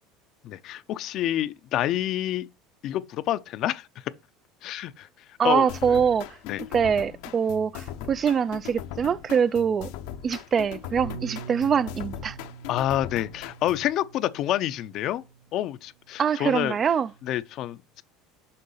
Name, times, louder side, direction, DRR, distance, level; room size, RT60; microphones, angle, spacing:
voice 1, 0.4-2.5 2.8-3.9 4.6-5.1 5.4-6.0 6.4-6.6 12.7-15.2 15.5-16.8 17.2-18.0, left 13 dB, 50° left, 0.5 m, -28 dB
voice 2, 5.4-6.4 6.7-9.9 10.2-12.4 16.2-17.1, right 7 dB, 30° right, 0.3 m, -24 dB
sound 1, 5.7-13.9, left 10 dB, 75° left, 0.8 m, -39 dB
Bass guitar, 11.0-15.5 16.3-17.3, right 7 dB, 75° right, 1.5 m, -44 dB
6.6 x 5.4 x 5.5 m
supercardioid pair, 130°, 0 cm